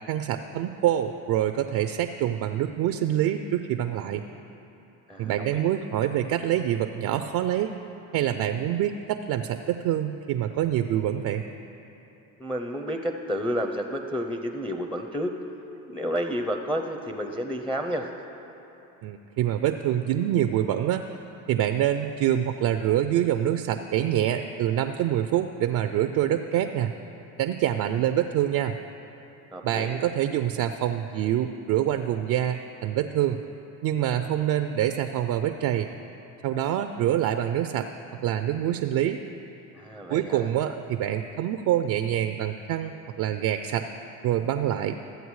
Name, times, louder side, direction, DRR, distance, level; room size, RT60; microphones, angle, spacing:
voice 1, 0.1-4.2 5.2-7.7 8.1-11.4 19.0-21.0 21.5-26.9 27.4-28.8 29.6-33.4 33.8-35.9 36.4-37.9 38.2-39.2 40.1-43.9 44.2-45.0, right 11 dB, 50° right, 8 dB, 0.4 m, -26 dB
voice 2, 5.1-5.7 12.4-15.4 15.9-18.1 29.5-30.0 39.7-40.5, equal, 5° left, 4 dB, 0.5 m, -30 dB
14.0 x 7.9 x 3.1 m, 3.0 s
supercardioid pair, 75°, 41 cm